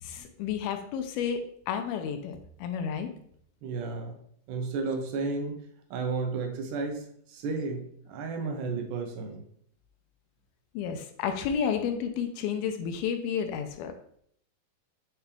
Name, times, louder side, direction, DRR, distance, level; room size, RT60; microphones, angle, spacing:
voice 1, 0.0-1.4 1.7-3.1 10.7-13.9, left 7 dB, 80° left, 6 dB, 2.3 m, -31 dB
voice 2, 3.6-4.1 4.5-5.6 5.9-9.4, right 4 dB, 75° right, 3 dB, 2.1 m, -33 dB
8.8 x 3.5 x 3.4 m, 0.64 s
omnidirectional pair, 4.7 m